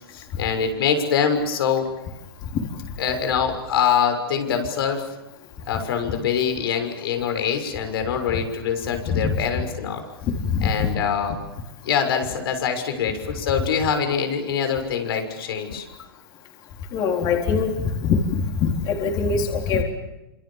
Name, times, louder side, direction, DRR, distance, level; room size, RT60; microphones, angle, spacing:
voice 1, 0.1-1.9 3.0-5.1 5.7-10.0 10.6-11.4 11.8-15.9, left 7 dB, 70° left, 6 dB, 6.5 m, -24 dB
voice 2, 10.2-10.9 16.9-19.8, left 5 dB, 30° left, 2 dB, 4.1 m, -23 dB
29.0 x 27.0 x 7.4 m, 0.99 s
hypercardioid pair, 150°, 13 cm